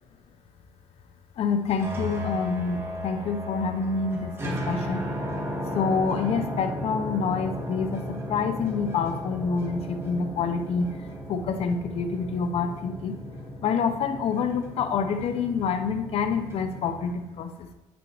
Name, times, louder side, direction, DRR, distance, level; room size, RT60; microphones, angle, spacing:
voice 1, 1.4-5.1 5.7-10.9 11.3-13.1 13.6-17.7, left 5 dB, 55° left, 7 dB, 0.8 m, -27 dB
sound 1, 1.5-17.1, equal, 20° right, 1.4 m, -35 dB
9.2 x 6.2 x 3.2 m, 1.0 s
cardioid pair, 100°, 12 cm